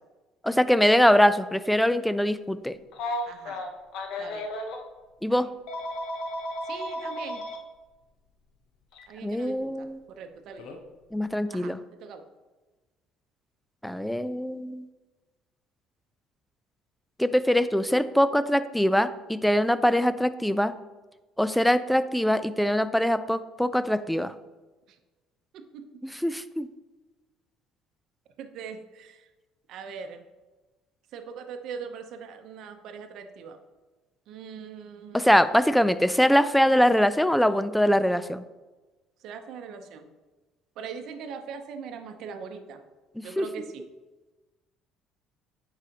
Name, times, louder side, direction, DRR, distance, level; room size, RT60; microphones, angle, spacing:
voice 1, 0.4-2.7 5.2-5.5 9.2-10.0 11.1-11.8 13.8-14.9 17.2-20.7 21.4-24.3 26.0-26.7 35.1-38.4 43.2-43.5, equal, 5° left, 13 dB, 0.3 m, -23 dB
Telephone, 2.9-4.8 5.7-7.6 8.9-9.1 10.6-10.8, left 1 dB, 70° left, 0.9 m, -34 dB
voice 2, 3.2-3.6 4.2-4.5 5.3-5.4 6.7-7.4 9.1-10.7 11.5-11.7 12.0-12.2 25.5-25.8 28.4-29.2 29.7-30.2 31.1-33.6 34.3-35.3 39.2-40.1 40.8-42.8 43.2-43.8, right 6 dB, 65° right, 6 dB, 0.7 m, -41 dB
8.8 x 4.8 x 2.9 m, 1.2 s
cardioid pair, 105°, 0 cm